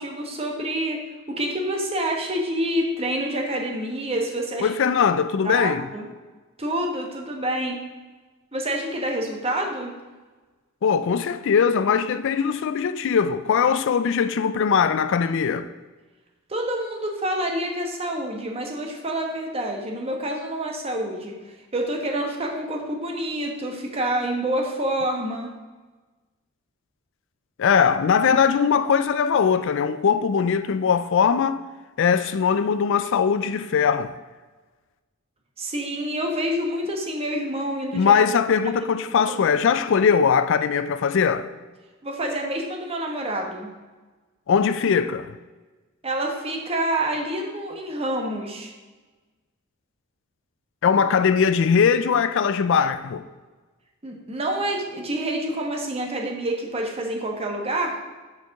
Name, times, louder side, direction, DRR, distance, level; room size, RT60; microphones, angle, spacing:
voice 1, 0.0-4.7 5.4-6.1 6.6-7.8 8.5-9.9 16.5-25.5 35.6-38.2 39.3-39.6 42.0-43.7 46.0-48.7 54.0-58.0, right 1 dB, 30° right, 1.1 m, -27 dB
voice 2, 4.6-5.9 10.8-15.7 27.6-31.6 32.0-34.2 37.9-41.5 44.5-45.3 50.8-53.2, left 6 dB, 60° left, 0.4 m, -20 dB
6.9 x 4.7 x 5.8 m
head